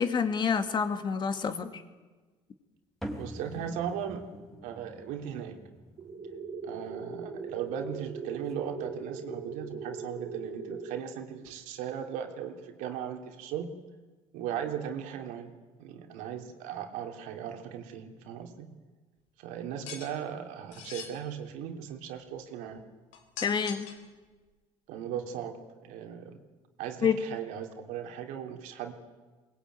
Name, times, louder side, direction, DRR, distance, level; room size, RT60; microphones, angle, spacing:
voice 1, 0.0-1.8 23.4-23.9 27.0-27.2, left 6 dB, 35° left, 8 dB, 2.4 m, -28 dB
sound 1, 3.0-9.7, right 1 dB, ahead, 3.7 m, -47 dB
voice 2, 3.1-4.3 4.6-5.6 6.6-13.7 14.3-15.5 15.8-18.7 19.4-22.8 24.9-26.4 26.8-28.9, right 9 dB, 80° right, 5 dB, 3.2 m, -37 dB
sound 2, 6.0-11.0, right 4 dB, 50° right, 3.5 m, -40 dB
sound 3, 19.9-20.1 20.7-21.1 23.1-24.1, left 8 dB, 75° left, 4.0 m, -42 dB
23.0 x 21.0 x 9.4 m, 1.3 s
cardioid pair, 115°, 13 cm